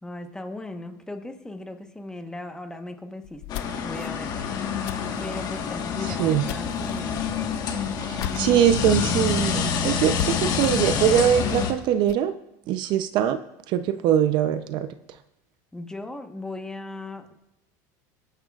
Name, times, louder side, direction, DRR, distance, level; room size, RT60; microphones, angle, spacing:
voice 1, 0.0-4.6 5.2-7.3 15.7-17.3, left 2 dB, 5° left, 6 dB, 1.1 m, -38 dB
sound 1, 3.2-8.9 9.3-9.4 9.6-9.7 10.2-12.3, left 14 dB, 70° left, 0.5 m, -38 dB
sound 2, 3.5-11.7, left 6 dB, 45° left, 1.4 m, -27 dB
voice 2, 8.0-12.3 12.7-13.4 13.7-14.9, right 10 dB, 55° right, 11 dB, 0.6 m, -22 dB
20.5 x 10.5 x 2.4 m, 0.90 s
supercardioid pair, 120°, 10 cm